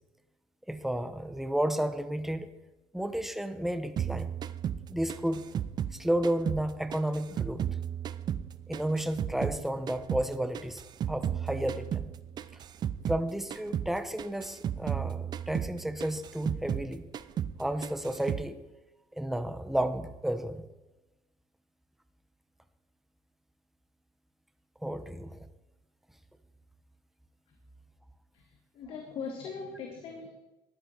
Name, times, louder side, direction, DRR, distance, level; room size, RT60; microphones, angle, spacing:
voice 1, 0.7-2.5 2.9-4.3 4.9-5.4 5.9-7.7 8.7-12.1 13.1-17.1 17.6-18.6 19.1-20.7 24.8-25.5, right 1 dB, 5° right, 10 dB, 1.1 m, -32 dB
sound 1, 4.0-6.7 6.9-9.6 9.9-13.2 13.5-13.9 14.2-16.9 17.1-17.6 17.8-18.5, right 9 dB, 45° right, 0.6 m, -34 dB
voice 2, 28.7-30.3, left 5 dB, 65° left, 2 dB, 2.3 m, -39 dB
14.0 x 11.0 x 4.6 m, 1.0 s
cardioid pair, 110°, 10 cm